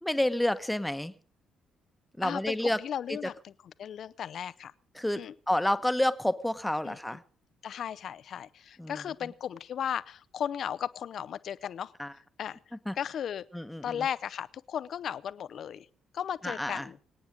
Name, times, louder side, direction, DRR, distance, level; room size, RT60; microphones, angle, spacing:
voice 1, 0.0-1.1 2.2-2.8 4.9-7.2 8.8-9.0 12.0-12.1 12.9-13.0 13.5-14.0 16.4-16.9, left 1 dB, 5° left, 12 dB, 1.2 m, -29 dB
voice 2, 2.2-3.5 3.8-4.7 5.2-5.3 6.8-7.0 7.6-11.9 12.4-12.6 13.0-13.4 13.8-15.9 16.1-17.0, left 9 dB, 55° left, 18 dB, 0.7 m, -35 dB
25.5 x 9.4 x 5.1 m, 0.41 s
figure-of-eight pair, 45°, 0 cm